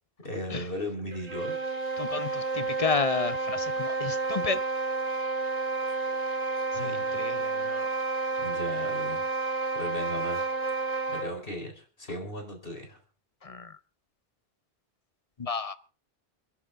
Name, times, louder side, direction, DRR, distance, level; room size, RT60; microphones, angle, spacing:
voice 1, 0.2-1.6 5.9-6.0 6.7-7.3 8.4-9.2 9.7-10.4 11.1-13.0, left 1 dB, 65° left, 4.5 m, -37 dB
sound 1, 1.1-11.4, right 3 dB, 40° right, 4.2 m, -30 dB
voice 2, 2.0-4.6 6.8-7.9 13.4-13.7 15.4-15.7, left 4 dB, 35° left, 1.0 m, -31 dB
28.5 x 10.5 x 3.7 m
omnidirectional pair, 1.0 m